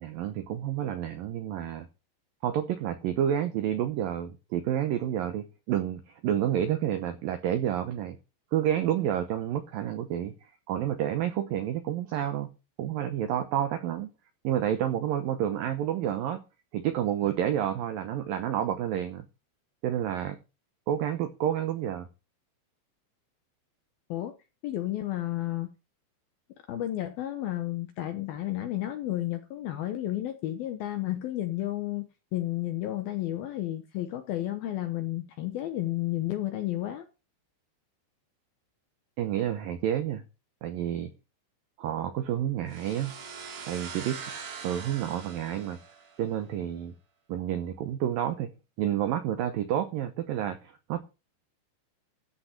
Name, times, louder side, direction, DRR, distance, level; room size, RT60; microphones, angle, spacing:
voice 1, 0.0-1.9 2.4-8.2 8.5-12.5 12.8-14.1 14.4-16.4 16.7-19.2 19.8-20.4 20.9-22.1 39.2-40.2 40.6-41.1 41.8-43.1 43.7-44.2 44.6-45.8 46.2-46.9 47.3-48.5 48.8-51.0, right 10 dB, 85° right, 2.0 m, -29 dB
voice 2, 24.6-25.7 26.7-37.1, left 14 dB, 75° left, 2.3 m, -32 dB
sound 1, 42.7-46.4, right 6 dB, 50° right, 4.4 m, -42 dB
14.0 x 5.9 x 7.0 m
omnidirectional pair, 5.4 m